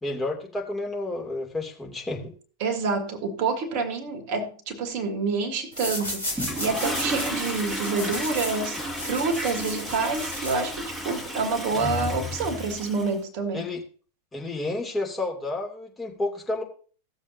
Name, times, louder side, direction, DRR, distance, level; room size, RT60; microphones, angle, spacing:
voice 1, 0.0-2.3 13.5-13.8 14.3-16.6, left 2 dB, 10° left, 2.8 m, -30 dB
voice 2, 2.6-13.6, right 4 dB, 45° right, 1.8 m, -28 dB
sound 1, 5.7-11.0, left 1 dB, 80° left, 4.0 m, -35 dB
Toilet flush, 6.3-13.2, equal, 5° right, 2.1 m, -33 dB
17.0 x 7.3 x 2.7 m
figure-of-eight pair, 90°, 0 cm